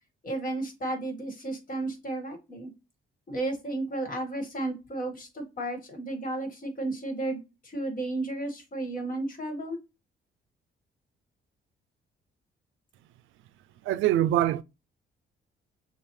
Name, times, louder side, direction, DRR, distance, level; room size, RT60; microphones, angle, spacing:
voice 1, 0.2-2.7 3.3-9.8, right 2 dB, 45° left, 1.8 m, -33 dB
voice 2, 13.8-14.6, right 13 dB, 85° right, 0.4 m, -23 dB
6.7 x 2.4 x 3.1 m
cardioid pair, 90°, 20 cm